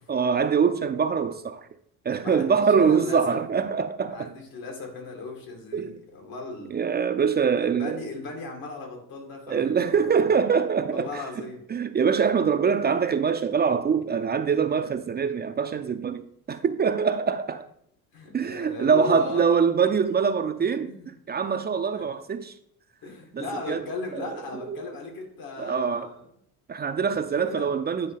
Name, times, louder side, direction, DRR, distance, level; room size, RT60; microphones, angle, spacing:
voice 1, 0.1-1.7 2.0-4.3 5.7-6.0 6.7-8.0 9.5-11.2 11.7-17.7 18.3-20.9 21.3-22.5 23.3-23.8 24.1-24.8 25.6-26.1 26.7-28.1, right 6 dB, 30° right, 0.5 m, -24 dB
voice 2, 2.2-3.4 4.1-6.8 7.6-10.3 10.9-11.6 18.1-19.5 20.6-21.1 21.9-22.1 23.0-26.3 27.1-27.7, left 3 dB, 75° left, 2.3 m, -37 dB
9.2 x 3.2 x 5.6 m
cardioid pair, 105°, 36 cm